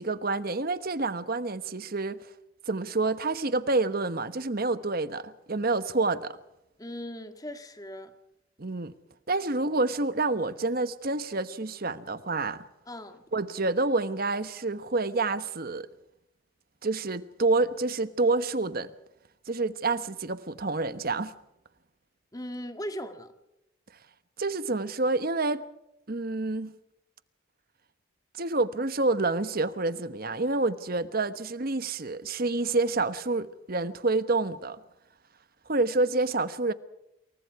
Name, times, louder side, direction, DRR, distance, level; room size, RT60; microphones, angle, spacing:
voice 1, 0.0-2.2 2.7-6.4 8.6-8.9 9.3-12.7 13.3-15.9 16.8-18.9 19.5-21.3 24.4-25.6 26.1-26.7 28.3-34.8 35.7-36.7, right 3 dB, 45° right, 1.1 m, -28 dB
voice 2, 6.8-8.1 12.9-13.2 22.3-23.3, equal, 15° left, 1.7 m, -38 dB
28.0 x 23.0 x 4.8 m
head